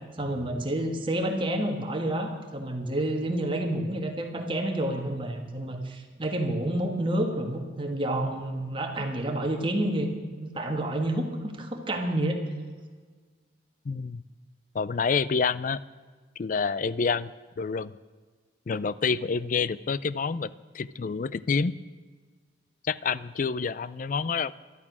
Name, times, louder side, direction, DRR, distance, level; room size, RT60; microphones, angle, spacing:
voice 1, 0.2-10.1 10.4-12.4, right 1 dB, 25° right, 3 dB, 1.7 m, -29 dB
voice 2, 13.9-14.2 14.7-15.8 16.4-17.3 17.6-17.9 18.7-21.8 22.8-24.5, left 5 dB, 45° left, 18 dB, 0.4 m, -28 dB
12.5 x 12.5 x 6.1 m, 1.5 s
head